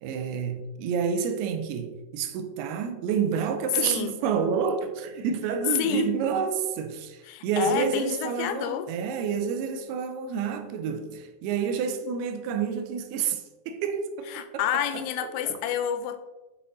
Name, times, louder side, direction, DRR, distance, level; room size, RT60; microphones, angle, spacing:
voice 1, 0.0-15.6, right 6 dB, 85° right, 2.6 m, -29 dB
voice 2, 3.8-4.1 5.8-6.1 7.3-8.9 14.3-16.2, left 9 dB, 85° left, 2.6 m, -29 dB
8.8 x 4.3 x 4.1 m
omnidirectional pair, 4.6 m